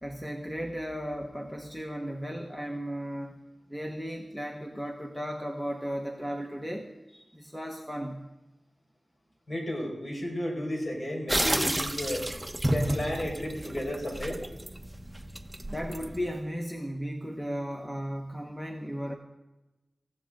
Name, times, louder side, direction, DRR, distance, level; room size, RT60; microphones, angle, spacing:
voice 1, 0.0-3.4 3.7-6.9 7.3-8.3 15.7-19.1, equal, 5° left, 3 dB, 1.3 m, -35 dB
voice 2, 9.5-12.3 12.7-14.4, equal, 40° left, 0 dB, 5.3 m, -33 dB
sound 1, 11.3-16.4, right 1 dB, 10° right, 1.0 m, -31 dB
20.0 x 15.5 x 3.8 m, 1.0 s
wide cardioid pair, 90°, 0 cm